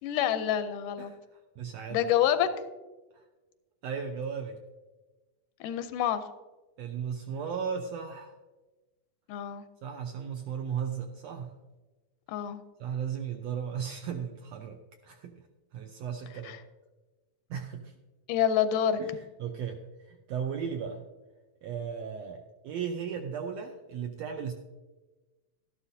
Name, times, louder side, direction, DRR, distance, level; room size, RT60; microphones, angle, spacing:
voice 1, 0.0-1.1 1.9-2.5 5.6-6.2 9.3-9.6 12.3-12.6 16.5-16.6 18.3-19.0, left 10 dB, 85° left, 10 dB, 2.2 m, -27 dB
voice 2, 1.0-2.1 3.1-3.2 3.8-4.6 6.8-8.3 9.8-11.5 12.8-14.8 15.0-15.3 15.7-16.6 17.5-17.9 19.0-21.0 21.6-24.5, right 7 dB, 80° right, 4 dB, 1.5 m, -36 dB
12.5 x 11.5 x 2.7 m, 1.2 s
omnidirectional pair, 3.6 m